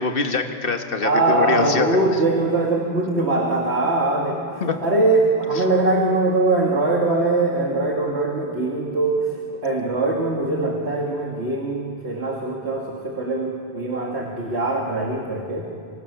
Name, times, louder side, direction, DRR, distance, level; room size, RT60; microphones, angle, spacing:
voice 1, 0.0-2.0 4.6-4.7, left 4 dB, 60° left, 5 dB, 1.7 m, -24 dB
voice 2, 1.0-15.6, right 2 dB, 85° right, -1 dB, 2.7 m, -22 dB
29.5 x 26.5 x 7.0 m, 2.5 s
omnidirectional pair, 1.1 m